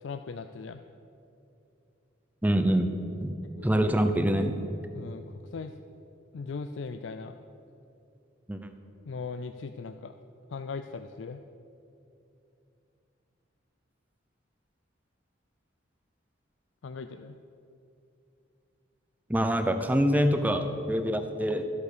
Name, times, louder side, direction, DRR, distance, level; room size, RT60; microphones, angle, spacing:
voice 1, 0.0-0.8 3.4-3.7 3.9-4.1 4.9-5.7 6.3-7.4 9.1-10.1 10.5-11.4 16.8-17.4, left 4 dB, 75° left, 9 dB, 0.4 m, -39 dB
voice 2, 2.4-2.9 3.2-3.3 3.6-4.5 8.5-8.7 19.3-21.6, equal, 10° right, 7 dB, 0.7 m, -25 dB
13.5 x 8.4 x 6.7 m, 2.7 s
head